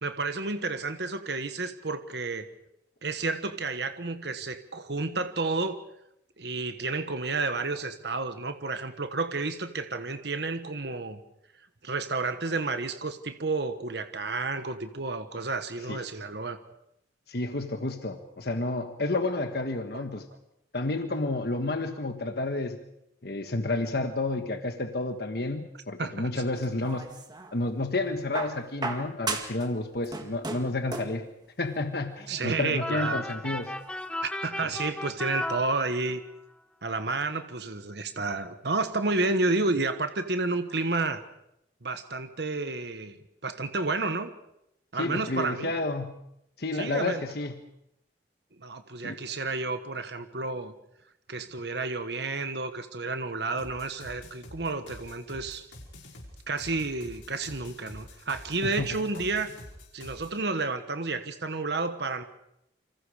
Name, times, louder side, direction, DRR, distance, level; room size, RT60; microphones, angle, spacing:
voice 1, 0.0-2.5 3.0-5.8 6.4-11.2 11.8-16.6 26.0-26.3 32.3-33.2 34.2-36.2 36.8-41.2 41.8-43.2 43.4-44.3 44.9-45.7 46.7-47.3 48.6-50.7 51.3-55.6 56.5-59.5 59.9-62.2, right 3 dB, 60° right, 9 dB, 1.3 m, -31 dB
voice 2, 17.3-20.3 20.7-22.8 23.2-27.1 27.5-31.2 31.6-33.7 44.9-46.2 46.6-47.6 49.0-49.2 58.6-58.9, left 2 dB, 55° left, 6 dB, 1.3 m, -30 dB
sound 1, 26.6-27.6 28.3-29.7 30.0-31.2 32.3-32.4, right 3 dB, 20° right, 1.9 m, -35 dB
sound 2, 32.8-36.3, left 1 dB, 5° left, 0.9 m, -35 dB
sound 3, 53.6-60.4, left 1 dB, 85° left, 5.3 m, -47 dB
28.0 x 25.5 x 5.0 m, 0.81 s
head